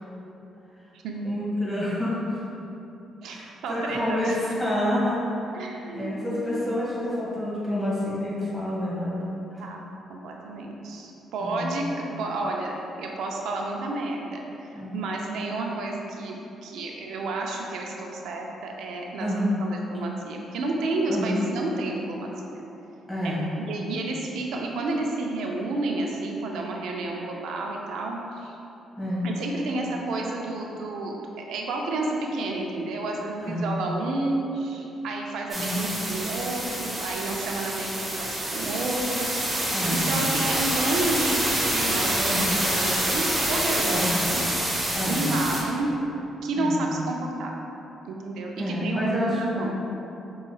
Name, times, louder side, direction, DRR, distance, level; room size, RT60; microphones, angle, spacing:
voice 1, 1.2-2.3 3.2-5.2 5.5-9.2 9.5-9.6 11.4-11.7 14.7-15.0 19.2-19.5 21.1-21.4 23.1-23.5 29.0-29.3 33.4-33.8 35.5-35.9 39.7-40.2 42.2-42.6 43.8-44.2 44.9-45.3 46.5-46.9 48.6-49.7, left 1 dB, 5° left, -9 dB, 1.5 m, -28 dB
voice 2, 3.2-4.4 5.5-6.9 9.6-9.8 10.1-19.3 19.6-22.6 23.2-28.6 29.2-39.3 39.9-44.4 45.1-45.9 46.4-47.5 48.0-49.7, right 2 dB, 80° right, 0 dB, 0.5 m, -30 dB
sound 1, 35.5-45.6, right 1 dB, 30° right, 0.9 m, -27 dB
5.4 x 3.0 x 2.3 m, 2.9 s
cardioid pair, 90°, 0 cm